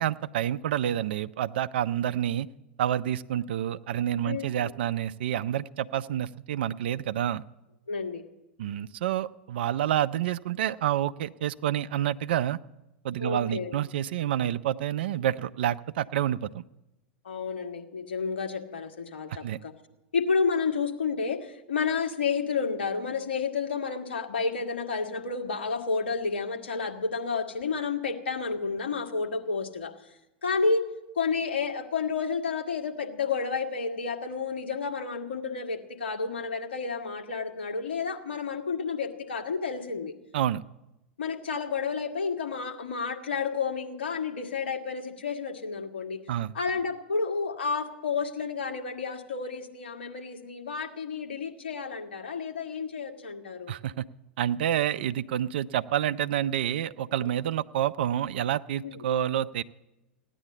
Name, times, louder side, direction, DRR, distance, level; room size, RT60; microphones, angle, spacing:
voice 1, 0.0-2.5 2.8-7.4 8.6-12.6 13.0-16.6 19.4-19.6 40.3-40.6 46.3-46.5 53.7-54.1 54.4-59.6, right 11 dB, 65° right, 13 dB, 0.5 m, -28 dB
voice 2, 7.9-8.2 13.2-13.7 17.2-19.7 20.1-30.2 30.4-30.9 31.2-40.1 41.2-46.2 46.5-53.8 57.2-57.3 58.8-59.0, left 5 dB, 75° left, 3 dB, 1.8 m, -31 dB
16.0 x 10.0 x 8.5 m, 0.95 s
hypercardioid pair, 95°, 6 cm